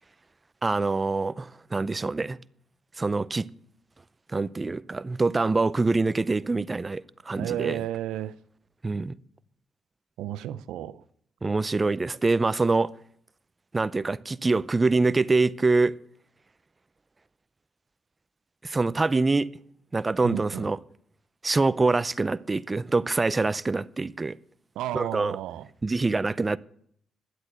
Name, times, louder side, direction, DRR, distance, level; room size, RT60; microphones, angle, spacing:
voice 1, 0.6-2.4 3.0-3.5 4.3-7.8 8.8-9.1 11.4-12.9 13.7-15.9 18.6-19.5 19.9-20.8 21.4-24.4 24.9-25.4 25.8-26.6, right 3 dB, 25° right, 0.5 m, -25 dB
voice 2, 7.4-8.3 10.2-11.0 20.2-20.7 24.8-25.7, right 12 dB, 90° right, 0.5 m, -32 dB
11.0 x 8.0 x 7.9 m
cardioid pair, 75°, 0 cm